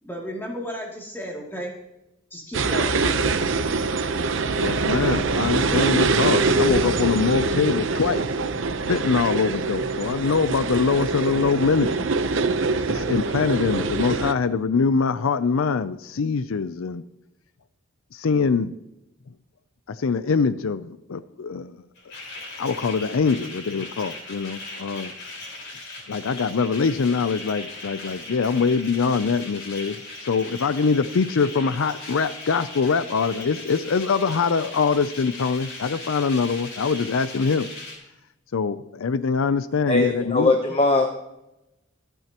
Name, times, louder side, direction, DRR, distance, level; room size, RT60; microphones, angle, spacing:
voice 1, 0.0-1.7 2.3-3.2, equal, 10° left, -2 dB, 2.6 m, -34 dB
sound 1, 2.5-14.3, right 3 dB, 65° right, 0.8 m, -24 dB
voice 2, 4.6-8.3 8.9-11.9 12.9-17.0 18.1-18.7 19.9-21.8 22.6-25.1 26.1-37.7 38.5-40.5, left 5 dB, 75° left, 14 dB, 0.5 m, -23 dB
sound 2, 21.9-38.0, left 2 dB, 55° left, 4.7 m, -38 dB
voice 3, 39.9-41.1, left 2 dB, 30° left, 4 dB, 0.9 m, -20 dB
25.0 x 9.1 x 2.9 m, 0.92 s
head